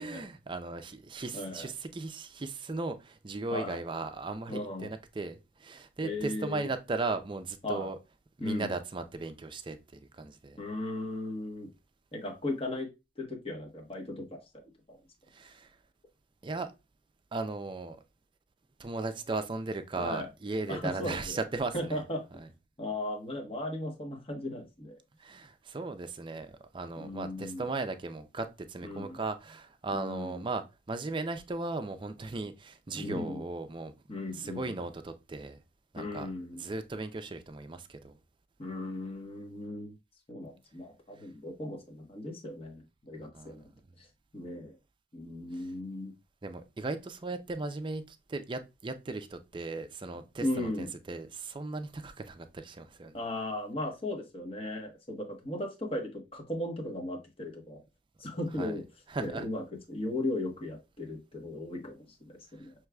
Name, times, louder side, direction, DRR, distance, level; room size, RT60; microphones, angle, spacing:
voice 1, 0.0-8.0 8.4-10.6 15.3-15.7 16.4-16.7 17.3-18.0 18.8-22.0 25.2-33.9 34.3-35.6 35.9-36.3 36.5-38.2 43.3-43.6 46.4-53.2 58.6-58.8 59.1-59.5, right 3 dB, 25° right, 0.4 m, -37 dB
voice 2, 1.3-1.7 3.5-3.8 4.5-4.9 6.0-6.7 7.6-7.9 8.4-8.7 10.6-11.7 12.1-12.9 13.2-14.4 14.9-15.0 20.0-20.3 20.7-21.4 21.7-22.2 22.8-25.0 27.0-27.6 28.8-29.2 29.9-30.4 32.9-33.4 34.1-34.7 36.0-36.6 38.6-39.9 40.3-43.7 44.0-44.1 44.3-44.8 45.1-46.1 50.4-50.9 53.1-57.8 58.2-58.8 59.2-62.7, left 1 dB, 30° left, 1.1 m, -37 dB
6.2 x 3.1 x 2.3 m
head